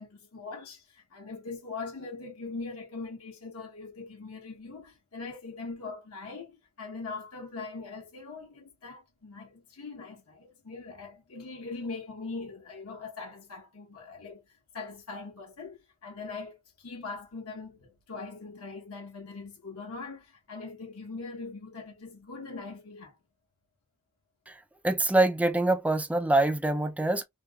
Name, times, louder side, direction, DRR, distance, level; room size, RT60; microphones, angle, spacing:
voice 1, 0.0-14.4 14.7-23.2, left 4 dB, 75° left, 0.9 m, -41 dB
voice 2, 24.8-27.2, right 2 dB, 5° right, 0.4 m, -25 dB
2.9 x 2.8 x 2.2 m
head